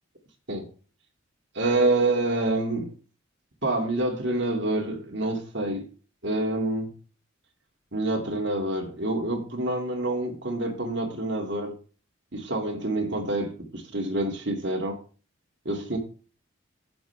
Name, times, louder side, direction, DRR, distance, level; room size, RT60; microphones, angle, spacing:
voice 1, 1.5-2.9 3.6-5.9 6.2-6.9 7.9-11.7 12.3-15.0 15.6-16.0, right 2 dB, 60° right, 2.5 m, -27 dB
15.5 x 7.0 x 3.4 m
head